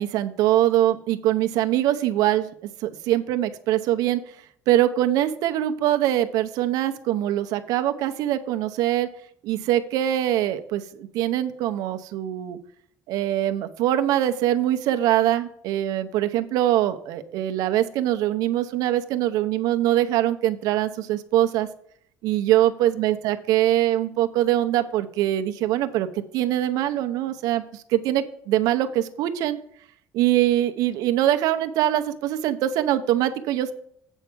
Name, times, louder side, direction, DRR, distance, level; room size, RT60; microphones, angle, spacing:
voice 1, 0.0-2.5 2.8-4.2 4.7-9.1 9.4-12.6 13.1-21.7 22.2-26.1 26.3-29.6 30.1-33.7, right 13 dB, 65° right, 8 dB, 0.7 m, -23 dB
8.2 x 4.5 x 6.7 m, 0.66 s
cardioid pair, 175°, 7 cm